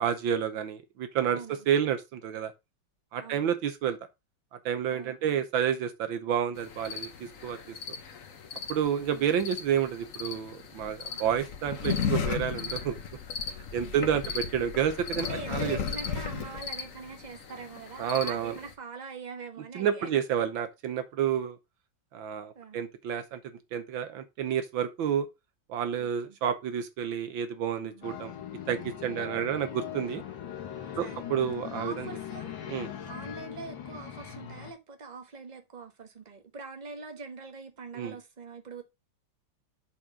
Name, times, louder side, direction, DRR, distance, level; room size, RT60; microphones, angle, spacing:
voice 1, 0.0-1.4 1.7-2.5 3.1-4.0 4.5-7.6 8.7-13.0 13.7-15.8 18.0-18.6 19.7-21.6 22.1-25.3 25.7-28.3 28.7-30.2 31.0-32.1 32.7-32.9 38.0-38.1, right 8 dB, 75° right, 1.6 m, -30 dB
voice 2, 1.3-1.7 3.2-3.5 4.9-5.5 9.1-9.3 11.1-11.3 13.7-14.4 15.2-20.1 22.5-22.8 26.0-26.4 27.7-28.3 31.0-31.3 31.7-32.5 33.1-38.8, right 4 dB, 25° right, 1.1 m, -43 dB
sound 1, 6.6-18.7, left 6 dB, 45° left, 1.3 m, -36 dB
sound 2, 28.0-34.7, left 9 dB, 70° left, 2.2 m, -40 dB
7.6 x 4.5 x 4.9 m
omnidirectional pair, 2.2 m